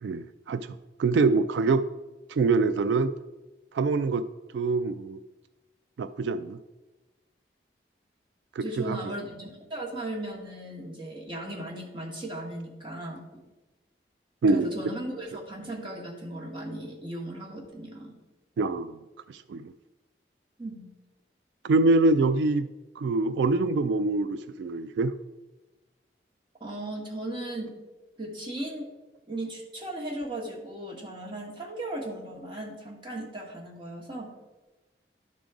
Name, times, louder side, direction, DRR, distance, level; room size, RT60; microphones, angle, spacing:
voice 1, 0.0-1.8 2.3-3.1 3.7-4.2 4.5-5.2 6.0-6.6 8.6-9.1 14.4-14.7 18.6-19.0 19.3-19.7 21.6-22.7 23.0-25.1, right 3 dB, 85° right, 13 dB, 0.3 m, -25 dB
voice 2, 8.6-13.2 14.5-18.1 20.6-20.9 26.6-27.8 28.2-28.9 29.3-34.3, right 1 dB, 25° right, -1 dB, 1.4 m, -37 dB
11.5 x 3.8 x 4.7 m, 1.1 s
head